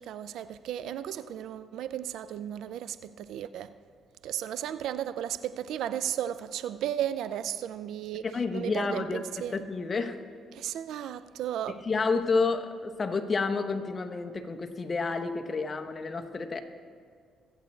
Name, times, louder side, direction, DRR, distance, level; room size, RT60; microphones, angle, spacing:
voice 1, 0.0-3.7 4.2-8.2 8.5-9.6 10.5-11.9, right 10 dB, 80° right, 0.4 m, -34 dB
voice 2, 8.3-10.2 11.7-16.6, left 4 dB, 35° left, 0.9 m, -30 dB
22.5 x 8.2 x 3.2 m
cardioid pair, 90°, 0 cm